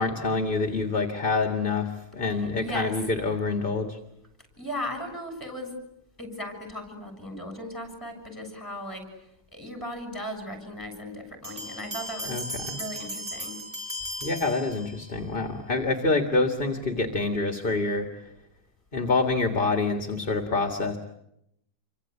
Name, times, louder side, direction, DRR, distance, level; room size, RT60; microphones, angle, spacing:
voice 1, 0.0-4.0 12.3-12.8 14.2-18.1 18.9-21.0, left 3 dB, 30° left, 6 dB, 1.9 m, -26 dB
voice 2, 2.3-2.9 4.6-5.7 6.2-12.5 12.7-13.6, left 1 dB, 10° left, 5 dB, 6.9 m, -37 dB
Bell, 11.4-15.2, equal, 40° right, 5.4 m, -37 dB
28.0 x 24.5 x 8.3 m, 0.79 s
omnidirectional pair, 1.9 m